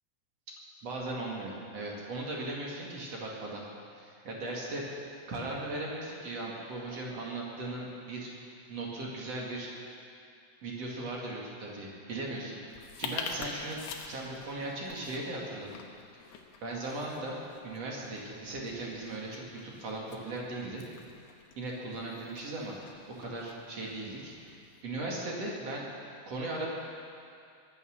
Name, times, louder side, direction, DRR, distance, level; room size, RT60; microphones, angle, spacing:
voice 1, 0.5-3.6 3.9-4.8 5.3-9.7 10.6-12.6 13.0-13.8 14.1-15.7 16.1-17.4 17.6-20.8 21.6-22.8 23.1-24.6 24.8-25.9 26.2-26.7, right 2 dB, 45° right, -3 dB, 2.6 m, -38 dB
sound 1, 12.7-24.8, left 5 dB, 75° left, 3.1 m, -46 dB
22.0 x 10.0 x 6.5 m, 2.5 s
omnidirectional pair, 5.3 m